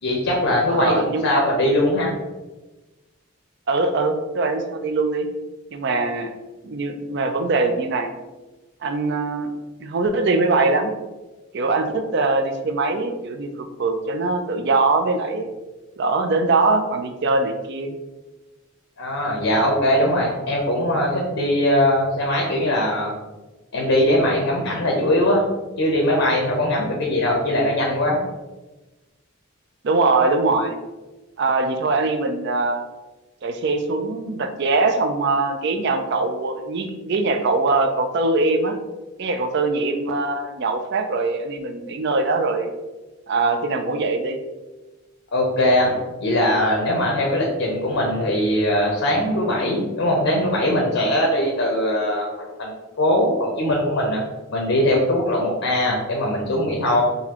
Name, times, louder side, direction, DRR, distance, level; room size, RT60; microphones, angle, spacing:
voice 1, 0.0-2.1 19.0-23.1 23.7-25.5 25.8-28.2 45.3-52.7 53.0-54.2 54.5-57.0, left 1 dB, 90° left, -2 dB, 0.7 m, -21 dB
voice 2, 0.7-1.4 3.7-5.3 5.7-6.3 6.6-8.1 8.8-9.5 9.8-10.9 11.5-15.5 16.0-17.9 29.8-30.8 31.4-32.8 33.4-38.8 39.2-42.7 43.3-44.4, right 3 dB, 55° right, 7 dB, 0.4 m, -22 dB
3.9 x 2.7 x 2.9 m, 1.1 s
head